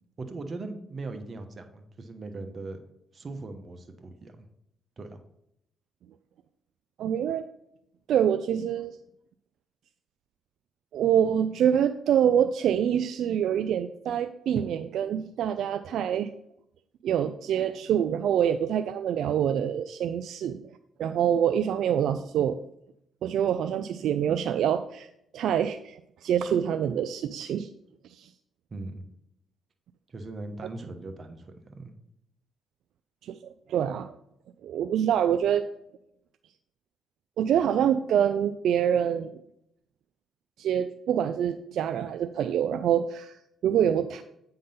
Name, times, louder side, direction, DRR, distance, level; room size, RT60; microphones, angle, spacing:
voice 1, 0.2-2.8 3.1-4.4 5.0-5.2 28.7-29.1 30.1-32.0, right 3 dB, 45° right, 7 dB, 1.0 m, -39 dB
voice 2, 7.0-7.4 8.1-9.0 10.9-16.3 17.0-20.6 21.0-22.6 23.2-27.7 28.0-28.3 33.2-34.2 34.6-35.6 37.4-39.3 40.6-44.2, right 9 dB, 75° right, 10 dB, 0.3 m, -26 dB
8.6 x 3.8 x 5.5 m, 0.78 s
cardioid pair, 75°, 0 cm